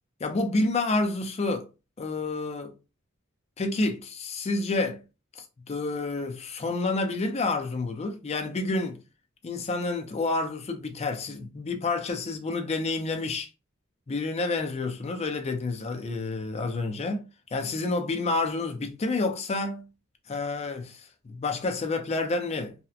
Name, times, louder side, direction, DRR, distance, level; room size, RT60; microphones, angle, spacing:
voice 1, 0.2-1.7 2.0-2.7 3.6-5.0 5.3-9.0 9.4-13.5 14.1-19.9 20.3-22.7, left 3 dB, 30° left, 0.4 m, -29 dB
2.8 x 2.0 x 2.3 m
head